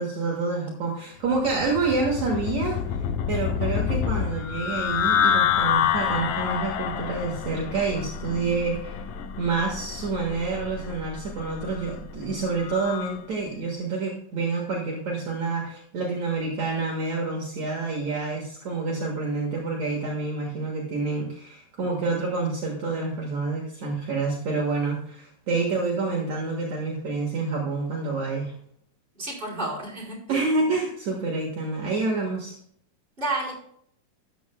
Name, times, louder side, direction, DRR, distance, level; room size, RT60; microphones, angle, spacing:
voice 1, 0.0-3.0 3.3-9.0 9.4-28.5 30.3-32.6, right 3 dB, 55° right, -2 dB, 2.8 m, -28 dB
sound 1, 1.3-13.2, left 8 dB, 85° left, 2.6 m, -28 dB
voice 2, 29.2-30.4 33.2-33.6, right 2 dB, 15° right, -4 dB, 4.5 m, -31 dB
13.0 x 10.0 x 2.3 m, 0.66 s
omnidirectional pair, 3.9 m